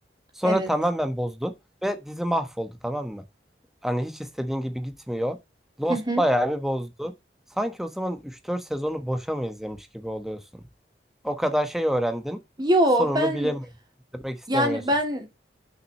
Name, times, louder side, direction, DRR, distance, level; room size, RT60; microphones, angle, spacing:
voice 1, 0.4-1.5 1.8-3.2 3.8-5.4 5.8-7.1 7.6-10.4 11.2-12.4 13.0-13.6 14.1-14.8, equal, ahead, 1.1 m, -27 dB
voice 2, 5.9-6.2 12.6-13.5 14.5-15.3, right 1 dB, 25° right, 2.5 m, -23 dB
6.4 x 5.9 x 6.4 m
head